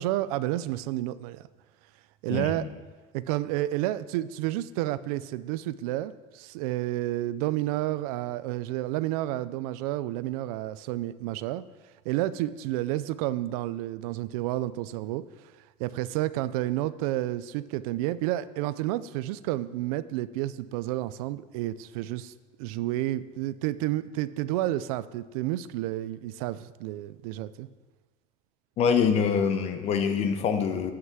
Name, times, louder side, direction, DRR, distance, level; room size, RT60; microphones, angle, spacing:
voice 1, 0.0-1.4 2.2-2.7 3.1-11.6 12.1-15.2 15.8-22.3 22.6-27.7, right 15 dB, 85° right, 16 dB, 0.5 m, -30 dB
voice 2, 2.3-2.7 28.8-30.9, left 6 dB, 35° left, 7 dB, 0.9 m, -25 dB
9.6 x 5.8 x 7.4 m, 1.3 s
cardioid pair, 160°, 18 cm